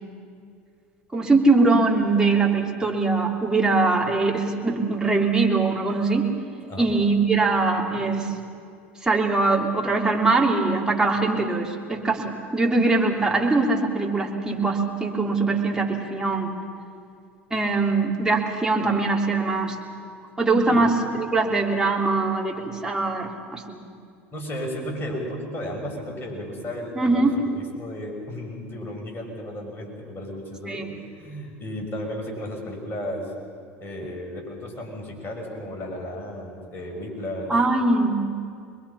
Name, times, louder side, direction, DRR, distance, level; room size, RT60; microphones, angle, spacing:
voice 1, 1.1-6.3 6.8-8.3 9.0-16.5 17.5-19.8 20.4-23.8 27.0-27.4 30.7-30.9 37.5-38.3, right 3 dB, 10° right, -1 dB, 3.6 m, -22 dB
voice 2, 24.3-33.3 33.8-37.5, left 1 dB, 35° left, 1 dB, 6.4 m, -34 dB
25.5 x 22.0 x 5.8 m, 2.3 s
hypercardioid pair, 80°, 7 cm